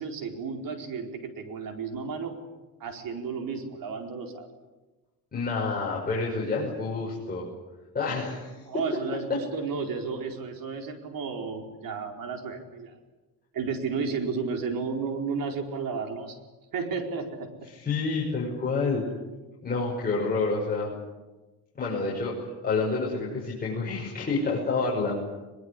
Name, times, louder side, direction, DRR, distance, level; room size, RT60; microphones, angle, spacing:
voice 1, 0.0-2.4 2.8-4.5 8.6-12.9 13.5-16.4 16.7-17.5, right 5 dB, 60° right, 4 dB, 4.6 m, -33 dB
voice 2, 5.3-7.5 7.9-8.5 9.3-9.4 17.7-19.0 19.6-20.9 21.7-25.1, left 4 dB, 25° left, -4 dB, 6.1 m, -28 dB
22.0 x 22.0 x 9.9 m, 1.2 s
cardioid pair, 140°, 39 cm